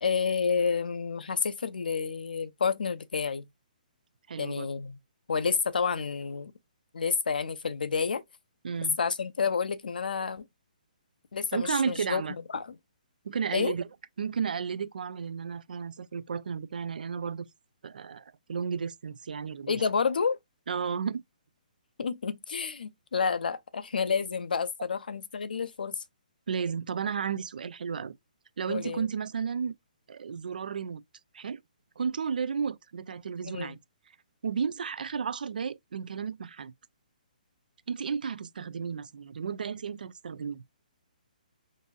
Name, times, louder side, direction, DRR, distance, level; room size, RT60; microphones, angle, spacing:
voice 1, 0.0-3.5 4.4-5.0 5.3-6.5 6.9-8.2 9.0-10.4 11.3-12.2 12.5-12.7 13.5-13.7 19.7-20.4 22.0-26.0 28.7-29.1 33.5-33.7, left 5 dB, 85° left, 0.5 m, -29 dB
voice 2, 4.3-4.7 8.6-9.0 11.5-12.3 13.2-13.9 14.2-17.5 17.8-19.8 20.7-21.2 26.5-28.1 28.6-29.8 30.1-31.0 31.3-31.6 32.0-33.8 34.4-36.7 37.9-40.6, right 6 dB, 75° right, 0.3 m, -33 dB
3.9 x 2.6 x 2.3 m
hypercardioid pair, 160°, 5 cm